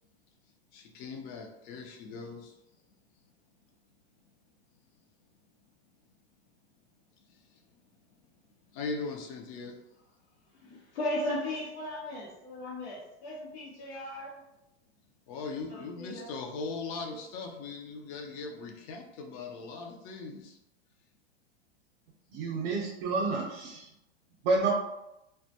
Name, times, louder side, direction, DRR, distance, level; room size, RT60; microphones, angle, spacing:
voice 1, 0.7-2.6 5.0-5.1 7.2-8.2 8.7-9.8 15.3-20.6, left 4 dB, 35° left, 2 dB, 0.4 m, -40 dB
voice 2, 10.5-14.4 15.7-16.3, left 1 dB, 90° left, -6 dB, 0.8 m, -36 dB
voice 3, 22.3-23.9 24.4-24.7, right 3 dB, 60° right, -3 dB, 0.6 m, -29 dB
2.1 x 2.1 x 2.7 m, 0.89 s
hypercardioid pair, 130°, 33 cm